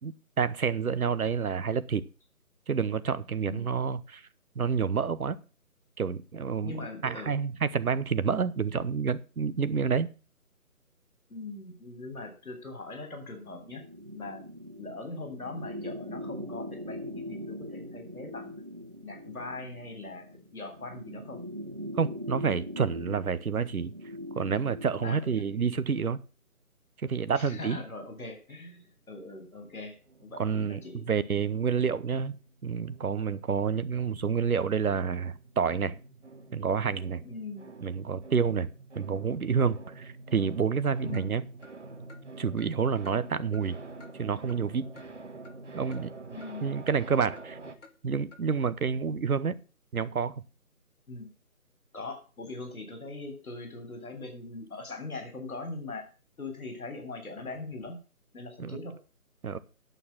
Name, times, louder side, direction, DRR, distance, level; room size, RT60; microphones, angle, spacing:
voice 1, 0.0-2.0 2.7-4.2 4.6-5.4 6.0-10.1 22.0-23.9 24.3-26.2 27.0-27.8 30.4-32.3 32.6-36.0 36.5-37.2 37.8-41.4 42.4-43.8 44.1-44.8 45.7-46.1 46.6-47.6 48.0-49.6 49.9-50.4 58.6-58.8 59.4-59.6, right 6 dB, 70° right, 1.0 m, -29 dB
voice 2, 3.4-3.8 6.6-7.3 11.3-13.8 14.1-14.4 14.8-18.6 19.0-20.3 20.5-21.4 25.0-25.4 27.3-30.0 30.2-31.0 37.2-37.7 41.0-41.3 46.3-46.7 51.1-51.3 51.9-56.1 56.4-58.0 58.3-58.9, left 3 dB, 70° left, 3.4 m, -41 dB
sound 1, 13.4-25.8, left 1 dB, 35° right, 0.7 m, -42 dB
sound 2, 30.1-32.6 32.9-47.7, right 3 dB, 50° right, 1.3 m, -47 dB
Clock, 41.1-41.3 41.6-41.7 42.1-42.2 42.6-42.7 43.0-43.2 43.5-43.6 44.0-44.1 44.5-44.6 45.0-45.1 45.4-45.6 45.9-46.0 46.4-46.5 46.9-47.0 47.4-47.5 47.8-47.9 48.3-48.4, left 3 dB, 55° left, 1.5 m, -52 dB
9.1 x 6.7 x 7.2 m
figure-of-eight pair, 175°, 45 cm